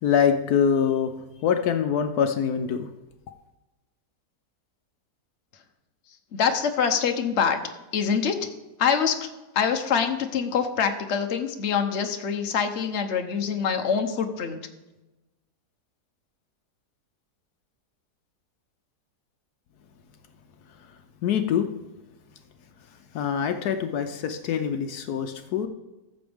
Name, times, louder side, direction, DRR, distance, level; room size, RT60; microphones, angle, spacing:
voice 1, 0.0-1.1 1.4-2.9 21.2-21.7 23.1-25.7, left 7 dB, 75° left, 7 dB, 1.1 m, -24 dB
voice 2, 6.3-7.6 7.9-8.4 8.8-9.1 9.5-14.6, left 6 dB, 50° left, 5 dB, 1.0 m, -25 dB
14.0 x 6.9 x 3.5 m, 1.0 s
omnidirectional pair, 1.7 m